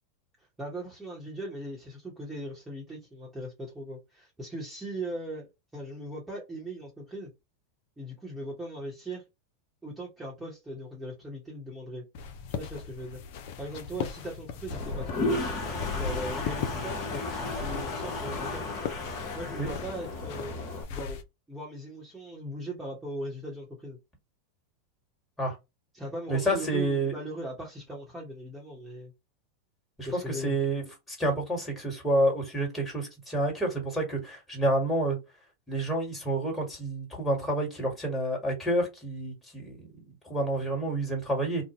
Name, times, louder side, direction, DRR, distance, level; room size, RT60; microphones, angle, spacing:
voice 1, 0.6-5.5 5.7-7.3 8.0-9.2 9.8-12.0 12.5-13.2 13.6-15.3 15.9-18.6 19.3-21.2 21.5-24.0 25.9-29.1 30.0-30.6, right 1 dB, 10° right, 1.1 m, -39 dB
sound 1, 12.1-21.2, left 6 dB, 60° left, 0.5 m, -38 dB
Toilet flush, 14.7-20.8, left 2 dB, 45° left, 1.0 m, -34 dB
voice 2, 26.3-27.1 30.0-30.8 31.1-35.2 35.7-39.8 40.2-41.6, right 1 dB, 10° left, 1.7 m, -29 dB
2.6 x 2.1 x 2.9 m
hypercardioid pair, 100°, 0 cm